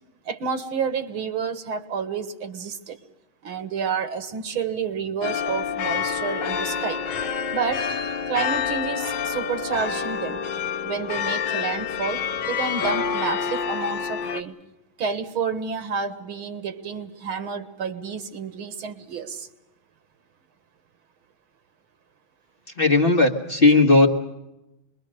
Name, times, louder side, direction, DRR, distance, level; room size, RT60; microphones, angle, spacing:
voice 1, 0.3-3.0 3.4-7.0 7.5-7.8 8.3-10.4 10.8-14.6 15.0-19.5, right 5 dB, 80° right, 10 dB, 2.3 m, -29 dB
sound 1, 5.2-14.4, left 7 dB, 65° left, 1.7 m, -28 dB
voice 2, 22.8-24.1, left 3 dB, 30° left, 1 dB, 1.7 m, -16 dB
26.0 x 22.0 x 6.5 m, 0.94 s
omnidirectional pair, 2.3 m